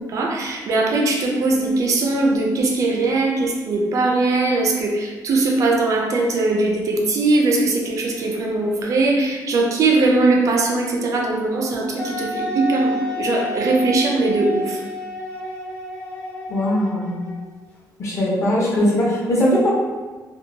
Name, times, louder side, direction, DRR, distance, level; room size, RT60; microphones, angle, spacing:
voice 1, 0.1-14.8, right 2 dB, 50° right, 0 dB, 0.4 m, -20 dB
Wind instrument woodwind instrument, 12.0-17.6, equal, 15° left, 0.5 m, -30 dB
voice 2, 16.5-17.3 18.0-19.7, equal, 45° left, -6 dB, 0.8 m, -20 dB
2.7 x 2.1 x 2.6 m, 1.3 s
cardioid pair, 165°, 7 cm